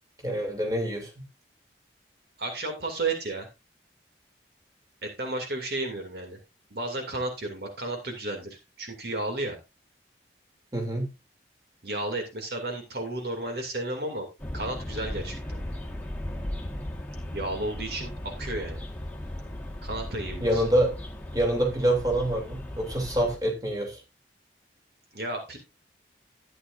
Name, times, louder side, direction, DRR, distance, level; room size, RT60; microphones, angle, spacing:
voice 1, 0.2-1.1 10.7-11.1 20.4-20.9 21.3-24.0, right 1 dB, 20° right, 2.9 m, -26 dB
voice 2, 2.4-3.5 5.0-6.4 6.7-9.6 11.8-14.3 14.5-15.4 17.3-18.8 19.8-20.6 25.1-25.6, right 2 dB, 60° right, 2.6 m, -33 dB
sound 1, 14.4-23.4, left 1 dB, 10° left, 1.6 m, -37 dB
13.0 x 9.7 x 2.6 m
head